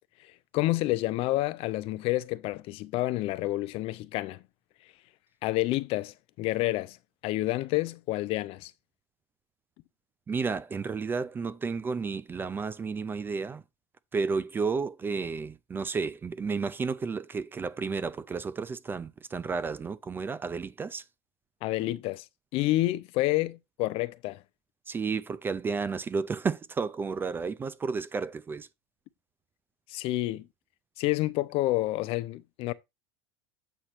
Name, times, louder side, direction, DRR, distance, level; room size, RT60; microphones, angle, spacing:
voice 1, 0.2-4.4 5.4-7.0 7.2-8.7 21.6-22.3 22.5-24.4 29.9-30.5 31.0-32.7, left 18 dB, 45° left, 0.4 m, -29 dB
voice 2, 10.3-13.6 14.1-21.0 24.9-28.7, right 5 dB, 15° right, 0.3 m, -32 dB
8.1 x 2.9 x 5.8 m
supercardioid pair, 145°, 14 cm